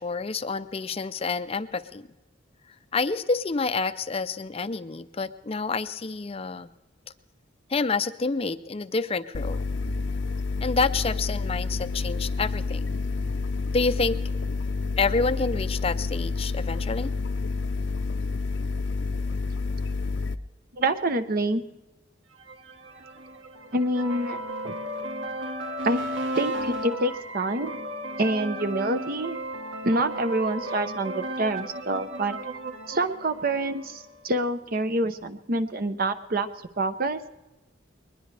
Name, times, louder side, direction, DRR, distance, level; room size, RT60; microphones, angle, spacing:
voice 1, 0.0-2.1 2.9-6.7 7.7-9.7 10.6-12.9 13.7-14.2 15.0-17.1, left 4 dB, 30° left, 12 dB, 0.5 m, -28 dB
sound 1, 9.3-20.4, left 3 dB, 75° left, 0.6 m, -29 dB
voice 2, 20.7-21.6 23.7-24.8 25.8-26.0 26.4-27.8 28.2-29.4 29.8-32.4 32.9-36.5 36.8-37.2, right 1 dB, 50° right, 9 dB, 0.9 m, -26 dB
sound 2, 22.4-34.2, right 1 dB, 75° right, 1.9 m, -35 dB
21.0 x 20.5 x 3.3 m, 1.1 s
head